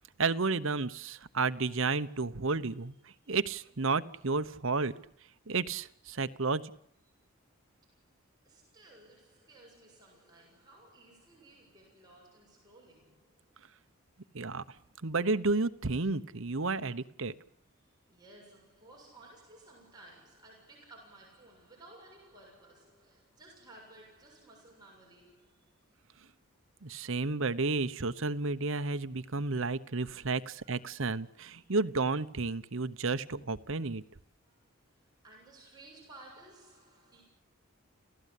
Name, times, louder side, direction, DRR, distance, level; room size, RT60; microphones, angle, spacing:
voice 1, 0.2-2.9 3.3-4.9 5.5-6.6 14.3-14.6 15.0-17.3 26.8-34.0, right 3 dB, 65° right, 1.0 m, -31 dB
voice 2, 8.4-13.6 17.6-25.7 29.4-29.6 30.1-30.9 31.3-31.8 34.4-34.6 35.2-37.2, right 2 dB, 20° right, 7.3 m, -57 dB
29.5 x 16.0 x 8.4 m
head